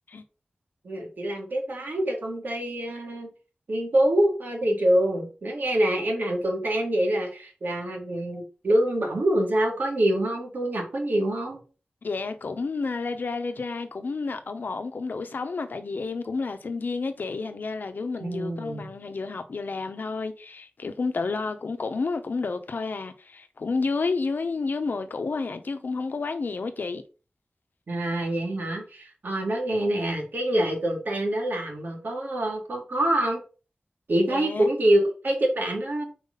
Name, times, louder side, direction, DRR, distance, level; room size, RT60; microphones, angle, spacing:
voice 1, 0.8-3.3 3.7-11.6 18.2-18.9 27.9-33.4 34.1-36.0, right 1 dB, 75° right, 2.0 m, -25 dB
voice 2, 12.0-27.0 34.3-34.7, left 4 dB, 75° left, 0.8 m, -30 dB
4.5 x 4.1 x 5.3 m
wide cardioid pair, 85°, 3 cm